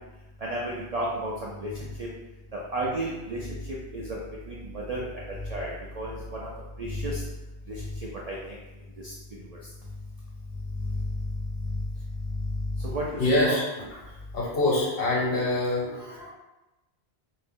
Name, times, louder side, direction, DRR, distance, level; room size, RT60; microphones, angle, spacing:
voice 1, 0.4-2.1 2.5-4.2 4.5-6.5 6.8-7.2 7.7-7.9 8.3-8.6 9.0-9.1 9.5-9.6 10.8-11.3 11.6-11.8 12.3-13.6, equal, 60° right, -4 dB, 0.4 m, -32 dB
voice 2, 13.2-13.7 14.1-16.3, left 1 dB, 60° left, -5 dB, 1.0 m, -25 dB
2.6 x 2.0 x 3.5 m, 1.0 s
omnidirectional pair, 1.2 m